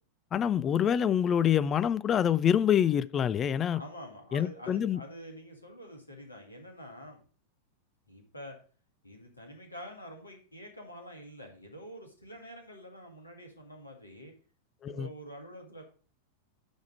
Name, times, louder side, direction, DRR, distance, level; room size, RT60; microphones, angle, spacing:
voice 1, 0.3-3.8 4.3-5.0 14.8-15.1, left 9 dB, 25° left, 0.4 m, -26 dB
voice 2, 3.7-7.2 8.1-8.6 9.0-14.3 14.9-15.8, equal, 80° left, 2.0 m, -47 dB
10.0 x 3.6 x 6.3 m
figure-of-eight pair, 90°, 0 cm